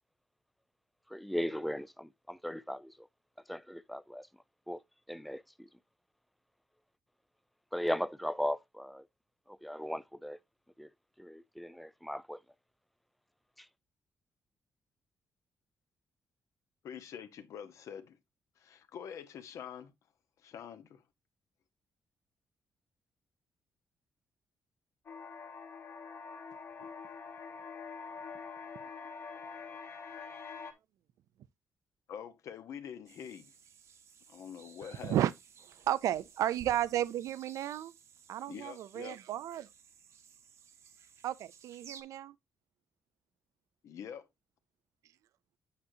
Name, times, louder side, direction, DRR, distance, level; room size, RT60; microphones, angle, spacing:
voice 1, 1.1-3.1 3.5-5.8 7.7-9.1 9.5-10.4 10.8-10.9 11.2-12.4 13.6-13.7, equal, ahead, 0.4 m, -38 dB
voice 2, 16.8-18.2 18.6-19.9 20.4-21.0 32.1-33.5 34.3-35.2 38.5-39.2 43.8-44.3, left 8 dB, 70° left, 1.1 m, -45 dB
sound 1, 25.1-30.7, left 5 dB, 50° left, 1.3 m, -45 dB
sound 2, 33.1-42.0, right 6 dB, 60° right, 1.0 m, -57 dB
voice 3, 34.8-35.3 35.6-37.9 38.3-39.7 41.2-42.4, right 12 dB, 85° right, 0.4 m, -33 dB
8.5 x 6.2 x 2.7 m
cardioid pair, 135°, 5 cm